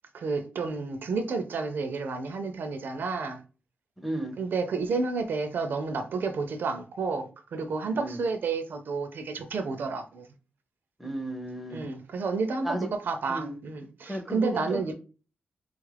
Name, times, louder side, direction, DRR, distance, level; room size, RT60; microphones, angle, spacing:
voice 1, 0.1-3.4 4.4-10.3 11.7-14.9, right 4 dB, 65° right, 0.4 m, -30 dB
voice 2, 4.0-4.3 8.0-8.2 11.0-11.8 12.6-12.9 13.3-13.5 14.1-14.9, right 1 dB, ahead, 0.5 m, -33 dB
3.4 x 2.4 x 3.2 m
wide cardioid pair, 140°, 4 cm